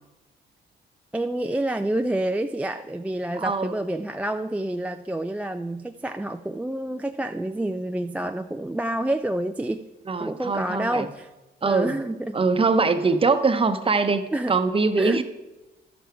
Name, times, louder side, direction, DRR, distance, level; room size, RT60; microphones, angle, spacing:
voice 1, 1.1-9.8 10.2-11.3 11.6-12.4 14.3-14.6 15.0-15.2, right 1 dB, 5° right, 6 dB, 0.3 m, -28 dB
voice 2, 3.4-3.7 10.1-11.1 11.6-11.9 12.3-15.2, right 4 dB, 25° right, 9 dB, 0.8 m, -22 dB
12.0 x 6.9 x 4.6 m, 1.1 s
cardioid pair, 90°, 20 cm